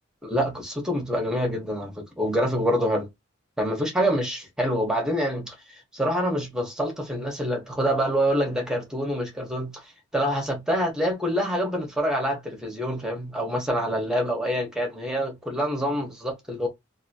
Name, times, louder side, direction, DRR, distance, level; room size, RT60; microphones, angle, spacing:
voice 1, 0.2-3.1 3.6-9.7 10.1-16.7, equal, 5° right, 1.2 m, -26 dB
2.9 x 2.7 x 2.7 m
head